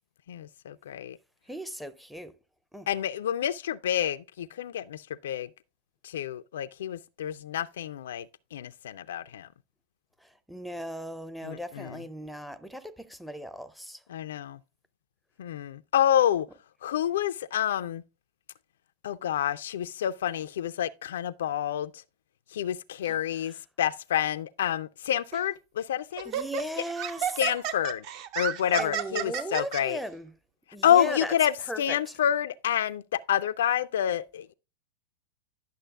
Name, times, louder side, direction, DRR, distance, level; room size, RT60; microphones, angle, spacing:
voice 1, 0.3-1.2 2.9-5.5 6.0-9.5 11.4-12.0 14.1-14.6 15.4-16.5 16.8-18.0 19.0-22.0 22.5-26.3 27.4-28.1 28.4-30.0 30.8-34.5, left 10 dB, 60° left, 0.3 m, -28 dB
voice 2, 1.5-2.4 2.7-2.9 10.2-14.0 23.1-23.2 23.4-23.5 26.2-27.4 28.7-30.3 30.7-31.3 31.7-32.1, equal, ahead, 0.5 m, -37 dB
Laughter, 25.3-25.5 26.2-29.8, right 10 dB, 40° right, 0.6 m, -32 dB
10.5 x 6.4 x 2.3 m
figure-of-eight pair, 90°, 0 cm